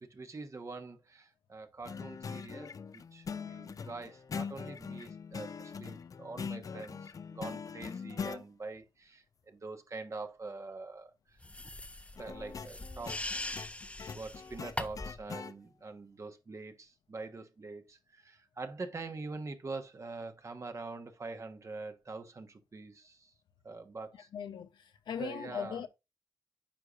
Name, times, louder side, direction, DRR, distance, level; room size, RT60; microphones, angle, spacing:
voice 1, 0.0-11.4 12.2-13.6 14.1-23.3 23.6-24.3 25.2-25.9, right 3 dB, 45° right, 1.3 m, -44 dB
sound 1, 1.8-8.4 12.2-15.5, left 6 dB, 50° left, 0.4 m, -42 dB
sound 2, 11.4-15.2, left 2 dB, 15° left, 0.8 m, -41 dB
voice 2, 24.3-25.9, left 8 dB, 90° left, 0.7 m, -39 dB
9.2 x 4.8 x 2.5 m
cardioid pair, 65°, 7 cm